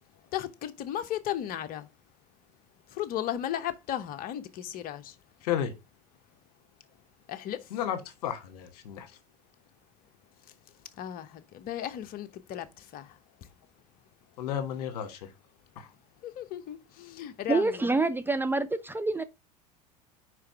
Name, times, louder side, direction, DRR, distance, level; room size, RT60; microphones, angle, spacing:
voice 1, 0.3-1.9 2.9-5.2 7.3-7.7 11.0-13.2 16.2-17.9, left 11 dB, 45° left, 0.9 m, -35 dB
voice 2, 7.7-9.1 14.4-15.3 15.8-15.9, left 9 dB, 70° left, 1.4 m, -32 dB
voice 3, 17.5-19.2, right 3 dB, 10° right, 0.4 m, -27 dB
5.0 x 4.8 x 4.6 m
hypercardioid pair, 85°, 21 cm